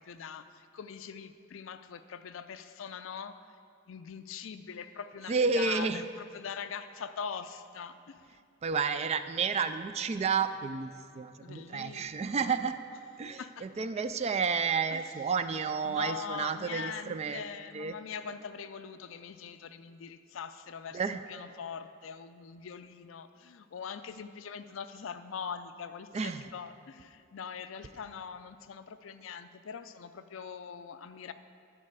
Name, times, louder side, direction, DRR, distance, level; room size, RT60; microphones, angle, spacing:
voice 1, 0.0-3.3 3.9-8.4 11.4-12.5 13.4-13.7 14.8-15.0 15.8-31.3, left 6 dB, 70° left, 11 dB, 0.4 m, -42 dB
voice 2, 5.3-6.0 8.6-12.8 13.2-17.4 17.7-17.9 20.9-21.2 26.1-26.5, right 5 dB, 30° right, 11 dB, 0.3 m, -31 dB
12.0 x 4.7 x 6.7 m, 2.4 s
head